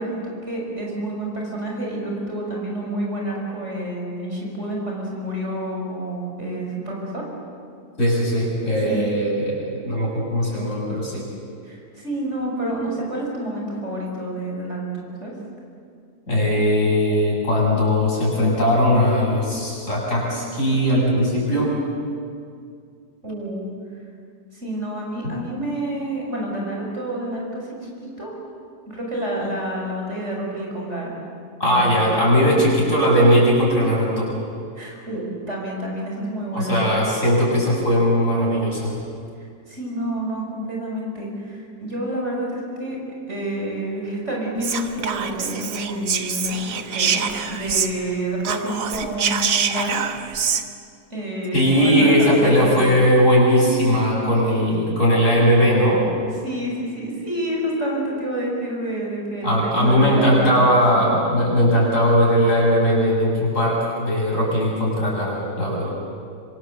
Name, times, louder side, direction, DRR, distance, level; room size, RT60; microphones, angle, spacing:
voice 1, 0.0-7.2 8.8-9.1 11.6-15.3 23.2-23.7 24.5-27.7 28.0-28.3 28.9-31.1 31.6-32.0 34.7-36.9 39.7-43.0 43.3-50.0 51.1-52.9 56.3-61.0, right 1 dB, 45° right, -2 dB, 6.4 m, -29 dB
voice 2, 8.0-11.3 16.3-21.7 25.2-25.3 31.6-34.3 36.5-38.9 51.5-56.0 59.4-65.9, equal, 50° left, -4 dB, 8.1 m, -19 dB
Whispering, 44.6-48.1 48.4-50.6, right 7 dB, 80° right, 1.8 m, -25 dB
26.0 x 25.0 x 7.8 m, 2.3 s
omnidirectional pair, 1.7 m